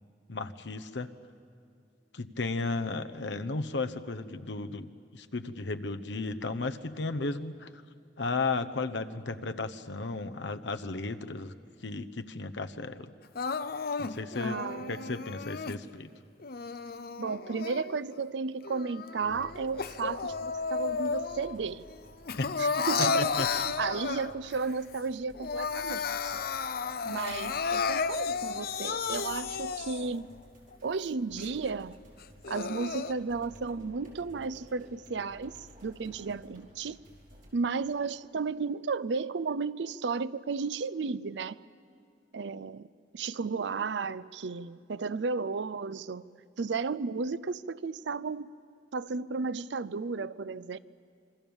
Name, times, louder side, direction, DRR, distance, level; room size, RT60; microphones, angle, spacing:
voice 1, 0.3-1.1 2.1-7.7 8.2-11.5 11.8-13.1 14.0-14.6 14.9-16.1 22.4-22.5 23.0-23.5, left 3 dB, 80° left, 1.0 m, -34 dB
Crying sobbing, 13.4-15.8 16.4-18.2 18.6-21.6 21.9-24.5 25.0-25.1 25.3-30.2 30.7-30.8 31.4-31.5 32.2-33.1, left 5 dB, 60° left, 0.7 m, -33 dB
voice 2, 14.4-15.1 17.2-21.8 22.6-26.4 27.0-30.3 30.8-32.0 32.5-37.0 37.5-41.6 42.3-42.9 43.1-46.2 46.6-48.5 48.9-50.8, right 4 dB, 80° right, 0.5 m, -34 dB
sound 1, 19.2-37.5, equal, 50° right, 4.9 m, -55 dB
26.5 x 24.0 x 7.2 m
head